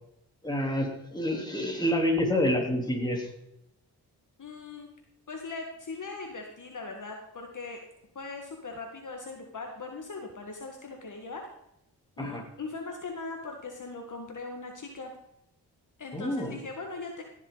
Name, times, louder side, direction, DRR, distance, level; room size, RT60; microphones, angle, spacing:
voice 1, 0.4-3.3 12.2-12.4 16.1-16.6, left 1 dB, 10° left, 0 dB, 3.4 m, -28 dB
voice 2, 4.4-4.9 5.3-7.8 8.1-11.5 12.2-15.1 16.0-17.2, left 3 dB, 50° left, 2 dB, 1.7 m, -40 dB
16.0 x 7.4 x 4.0 m, 0.79 s
cardioid pair, 60°, 40 cm